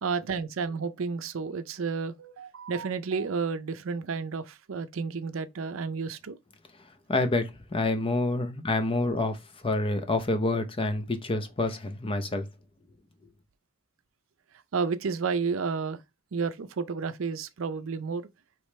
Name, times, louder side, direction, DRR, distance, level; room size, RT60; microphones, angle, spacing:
voice 1, 0.0-6.4 14.7-16.0 16.3-18.3, right 5 dB, 70° right, 0.5 m, -31 dB
voice 2, 7.1-12.5, left 2 dB, 25° left, 0.6 m, -28 dB
4.9 x 3.1 x 3.2 m
head